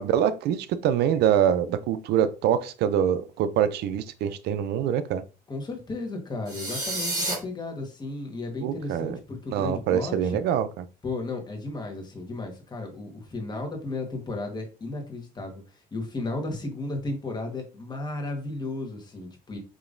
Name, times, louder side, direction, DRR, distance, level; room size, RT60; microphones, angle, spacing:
voice 1, 0.0-5.2 8.6-9.2 9.5-10.8, right 9 dB, 75° right, 0.4 m, -24 dB
voice 2, 5.5-10.4 11.0-19.6, left 2 dB, 25° left, 1.3 m, -34 dB
sound 1, 6.5-7.3, right 2 dB, 25° right, 2.1 m, -29 dB
5.0 x 2.9 x 2.5 m
cardioid pair, 110°, 17 cm